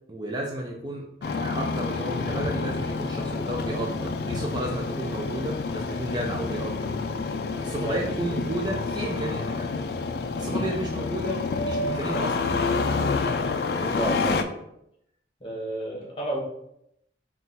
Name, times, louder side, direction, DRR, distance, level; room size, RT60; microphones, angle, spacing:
voice 1, 0.0-6.9 7.6-9.8 10.4-12.8 13.7-14.1, right 1 dB, 25° right, -1 dB, 0.4 m, -33 dB
Engine starting, 1.2-14.4, left 4 dB, 55° left, 0.3 m, -28 dB
voice 2, 7.8-8.3 10.5-10.7 13.9-14.5 15.4-16.4, right 1 dB, 30° left, -4 dB, 1.2 m, -31 dB
3.9 x 2.4 x 4.0 m, 0.78 s
head